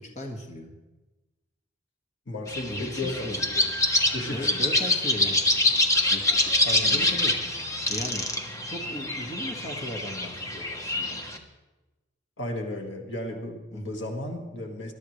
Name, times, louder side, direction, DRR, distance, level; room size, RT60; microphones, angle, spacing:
voice 1, 0.2-0.7 2.7-3.4 4.3-5.4 6.1-6.5 6.9-7.3 7.9-8.3 8.7-11.2 13.7-13.9, left 1 dB, 40° left, 1 dB, 1.7 m, -37 dB
voice 2, 2.3-3.7 4.1-4.8 6.6-7.1 12.4-14.9, left 1 dB, 80° left, 1 dB, 1.7 m, -34 dB
sound 1, 2.5-11.4, left 1 dB, 15° left, 1.1 m, -26 dB
21.0 x 12.0 x 3.2 m, 1.1 s
head